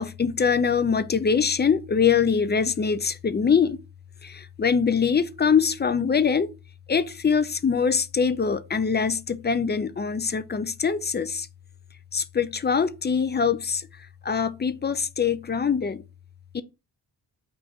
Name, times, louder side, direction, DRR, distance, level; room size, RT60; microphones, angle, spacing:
voice 1, 0.0-3.8 4.2-6.5 6.9-11.5 12.1-13.9 14.2-16.0 16.5-16.6, left 6 dB, 25° left, 0.4 m, -23 dB
3.7 x 2.6 x 4.4 m
cardioid pair, 65°, 40 cm